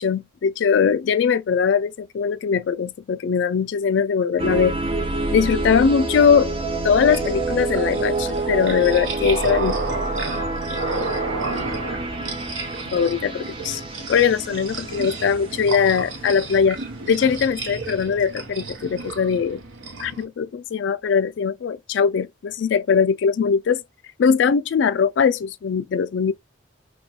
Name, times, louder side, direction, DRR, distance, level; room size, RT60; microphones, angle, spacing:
voice 1, 0.0-4.7 5.3-6.5 6.8-9.8 12.9-13.8 14.1-16.8 17.1-19.6 20.0-23.8 24.2-26.3, left 6 dB, 70° left, 0.3 m, -20 dB
sound 1, 4.4-17.3, right 2 dB, 25° right, 0.5 m, -28 dB
sound 2, 7.1-20.3, right 3 dB, 80° right, 0.8 m, -32 dB
2.9 x 2.2 x 2.8 m
head